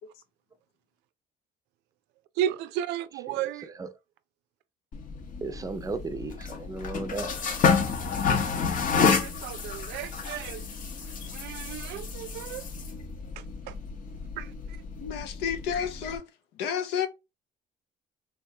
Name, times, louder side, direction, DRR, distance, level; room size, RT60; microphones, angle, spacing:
voice 1, 2.4-3.7 9.0-10.8 11.3-12.7 13.4-13.7 14.4-14.5, right 11 dB, 90° right, 0.4 m, -34 dB
voice 2, 3.3-3.9 5.4-7.3, right 3 dB, 20° right, 0.5 m, -36 dB
sound 1, 4.9-16.2, left 5 dB, 50° left, 0.9 m, -30 dB
voice 3, 15.0-16.2 16.6-17.1, left 8 dB, 90° left, 0.7 m, -30 dB
3.5 x 3.3 x 2.7 m
cardioid pair, 110°, 17 cm